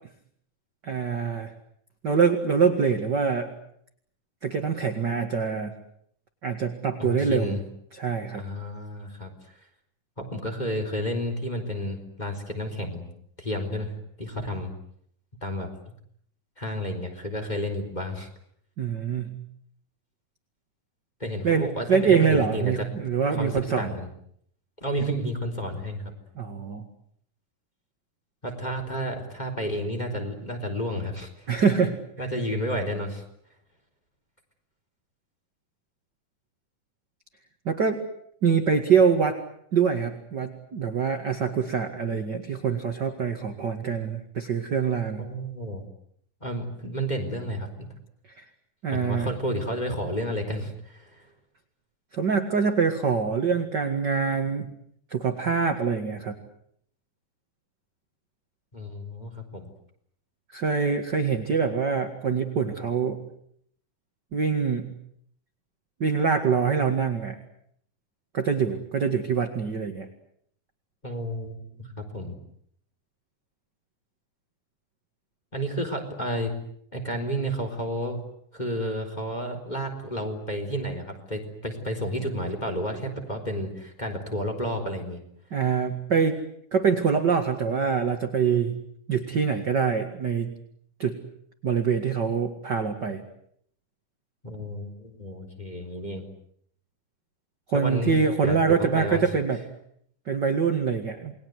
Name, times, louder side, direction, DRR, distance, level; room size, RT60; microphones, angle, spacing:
voice 1, 0.8-1.5 2.0-3.5 4.4-5.7 6.4-7.6 8.0-8.4 18.8-19.4 21.4-23.9 26.4-26.8 31.5-32.0 37.7-38.1 38.4-39.4 39.7-45.2 48.4-48.5 48.8-49.3 52.1-54.7 55.1-56.4 60.5-63.2 64.3-64.9 66.0-67.4 68.3-70.1 85.5-86.4 86.7-88.8 89.1-90.5 91.0-91.2 91.6-93.2 97.7-99.6 100.3-101.3, right 6 dB, 40° right, 6 dB, 2.0 m, -24 dB
voice 2, 7.0-7.6 8.3-9.3 10.2-13.1 13.4-14.7 15.4-15.7 16.6-18.3 21.2-22.9 23.3-24.1 24.8-26.1 28.4-31.5 32.2-33.2 45.2-45.8 46.4-47.9 48.9-51.3 58.7-59.7 71.0-71.5 72.0-72.4 75.5-76.5 76.9-78.2 78.5-85.2 94.4-96.3 97.7-98.1 98.4-99.3, equal, 10° left, 3 dB, 4.0 m, -31 dB
29.0 x 21.5 x 8.1 m, 0.69 s
omnidirectional pair, 3.8 m